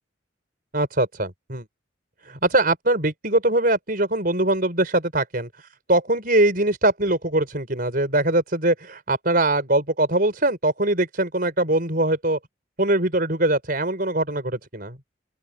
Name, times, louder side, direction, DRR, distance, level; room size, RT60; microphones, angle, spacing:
voice 1, 0.7-1.6 2.2-12.4 12.8-15.0, right 2 dB, 45° right, 5.0 m, -22 dB
open air
head